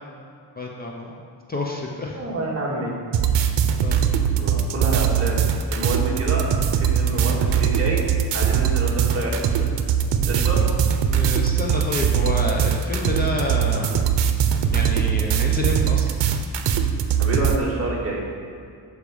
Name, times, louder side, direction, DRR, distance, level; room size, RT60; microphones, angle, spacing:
voice 1, 0.6-1.2 1.5-2.2 3.3-4.0 11.1-14.0 14.7-16.1, left 2 dB, 20° left, -2 dB, 0.6 m, -28 dB
voice 2, 2.1-2.9 4.4-6.5 6.8-8.0 8.3-9.8 10.2-10.6 17.2-18.2, right 2 dB, 35° right, -4 dB, 1.8 m, -28 dB
sound 1, 3.1-17.6, right 8 dB, 85° right, 0.8 m, -21 dB
12.0 x 5.0 x 5.0 m, 2.3 s
wide cardioid pair, 160°, 42 cm